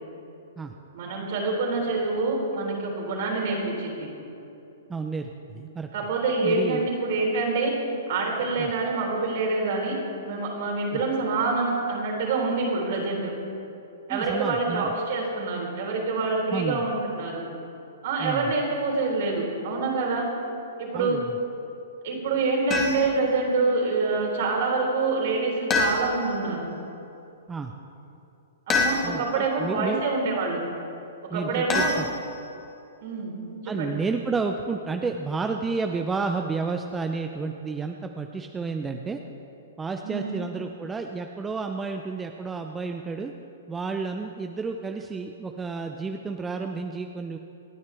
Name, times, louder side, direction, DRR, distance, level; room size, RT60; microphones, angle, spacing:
voice 1, 0.9-4.1 5.9-7.8 8.1-13.3 14.1-17.4 18.0-20.3 20.8-21.2 22.0-26.6 28.7-30.6 31.3-31.9 33.0-33.3 33.6-34.0 40.0-40.3, right 3 dB, 55° right, -1 dB, 3.7 m, -26 dB
voice 2, 4.9-5.9 6.4-6.9 8.6-8.7 10.9-11.0 14.1-14.9 16.5-16.8 18.2-18.5 20.9-21.3 27.5-27.7 29.0-30.0 31.3-32.1 33.7-39.2 39.8-43.3 43.7-47.4, right 4 dB, 15° right, 4 dB, 0.7 m, -31 dB
sound 1, 22.7-23.2 25.7-26.4 28.7-29.4 31.7-32.6, left 4 dB, 25° left, 2.0 m, -27 dB
27.5 x 9.6 x 3.5 m, 2.8 s
figure-of-eight pair, 115°, 0 cm